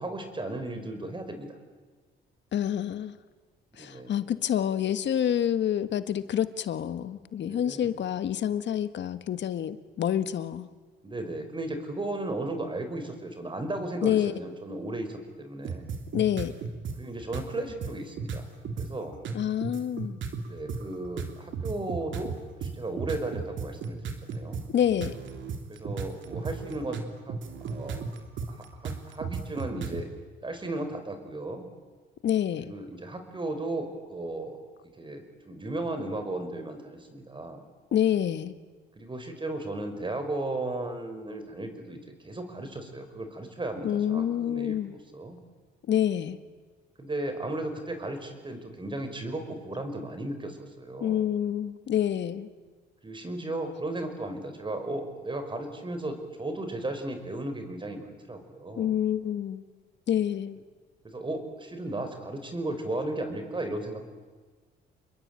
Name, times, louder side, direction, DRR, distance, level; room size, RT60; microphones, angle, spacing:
voice 1, 0.0-1.6 3.8-4.1 7.4-7.9 11.0-15.9 17.0-18.4 18.8-19.2 20.5-24.6 25.7-27.0 27.3-28.1 28.5-30.1 30.4-31.6 32.6-34.6 35.0-37.6 39.0-44.8 45.1-45.4 47.0-51.3 53.0-58.9 61.0-64.1, right 2 dB, 25° right, 7 dB, 5.0 m, -35 dB
voice 2, 2.5-3.1 3.8-10.7 14.0-14.3 16.1-16.5 19.3-20.2 24.7-25.1 32.2-32.7 37.9-38.5 43.8-45.0 45.9-46.4 51.0-52.5 58.8-59.6 60.1-60.6, left 10 dB, 65° left, 12 dB, 1.5 m, -27 dB
sound 1, 15.6-17.0 17.3-17.4 17.8-18.9 19.2-30.0, right 5 dB, 70° right, 3.0 m, -34 dB
28.5 x 21.5 x 9.0 m, 1.4 s
cardioid pair, 90°, 20 cm